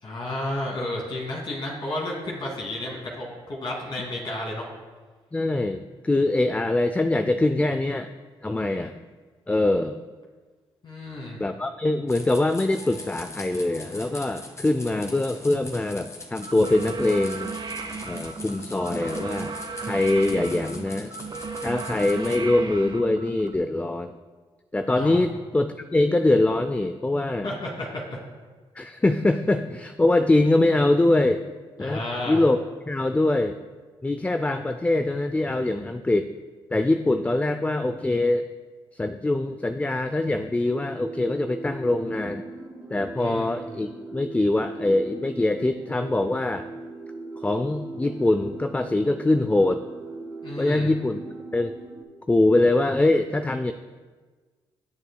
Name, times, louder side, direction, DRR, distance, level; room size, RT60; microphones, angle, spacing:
voice 1, 0.0-4.7 10.8-11.4 25.0-25.2 27.4-28.2 31.8-32.4 43.2-43.5 50.4-50.9, left 1 dB, 50° left, -2 dB, 2.2 m, -32 dB
voice 2, 5.3-8.1 8.4-9.0 9.5-10.0 11.4-17.5 18.1-21.1 21.6-24.2 24.7-27.5 28.8-31.4 31.8-32.6 32.9-33.6 34.0-36.3 36.7-38.4 38.9-42.5 42.9-46.7 47.4-49.8 50.6-51.2 51.5-51.7 52.3-53.7, left 2 dB, 15° left, 9 dB, 0.4 m, -23 dB
sound 1, 12.1-22.4, left 2 dB, 30° left, 1.7 m, -42 dB
sound 2, 16.4-23.5, right 4 dB, 45° right, 0.8 m, -35 dB
sound 3, 40.6-52.0, right 2 dB, 15° right, 2.2 m, -39 dB
17.0 x 6.8 x 2.3 m, 1.4 s
supercardioid pair, 65°, 11 cm